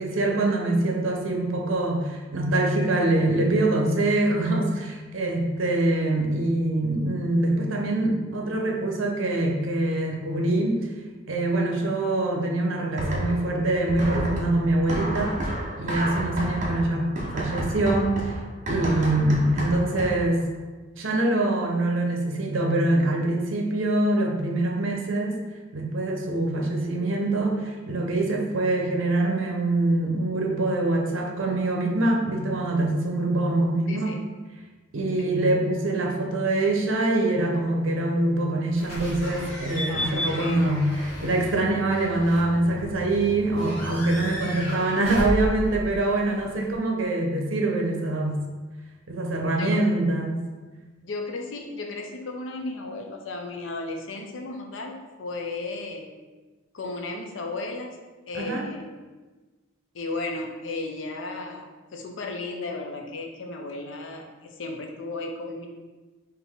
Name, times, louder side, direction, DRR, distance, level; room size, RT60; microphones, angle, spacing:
voice 1, 0.0-10.9 11.3-15.4 15.8-17.1 17.3-18.4 18.7-20.4 21.0-25.4 25.7-34.2 34.9-48.4 49.1-50.4 58.3-58.7, right 2 dB, 75° right, 1 dB, 0.7 m, -24 dB
sound 1, 13.0-13.6 13.9-20.3, right 1 dB, 40° right, 0.7 m, -30 dB
Slam / Squeak / Alarm, 38.8-46.7, equal, 55° left, 1.5 m, -34 dB
voice 2, 39.9-40.8 49.6-49.8 51.0-56.1 56.7-57.9 58.3-58.8 59.9-61.7 61.9-65.7, left 2 dB, 70° left, 2 dB, 0.6 m, -34 dB
3.9 x 2.9 x 3.5 m, 1.3 s
head